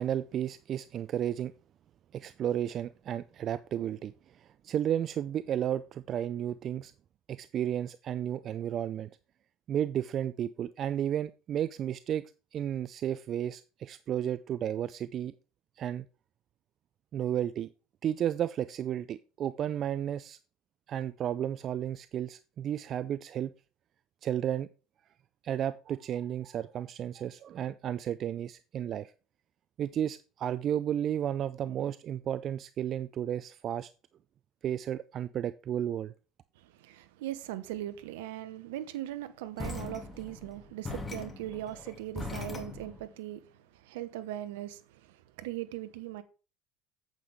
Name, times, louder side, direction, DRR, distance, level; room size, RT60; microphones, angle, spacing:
voice 1, 0.0-1.5 2.1-6.9 7.3-9.1 9.7-12.2 12.5-15.3 15.8-16.1 17.1-17.7 18.0-20.4 20.9-23.5 24.2-24.7 25.4-29.1 29.8-33.9 34.6-36.1, right 10 dB, 45° right, 0.4 m, -33 dB
voice 2, 36.6-46.2, right 13 dB, 70° right, 0.9 m, -40 dB
sound 1, 39.6-43.1, left 2 dB, 20° left, 2.4 m, -40 dB
9.0 x 7.8 x 3.5 m
hypercardioid pair, 70°, 0 cm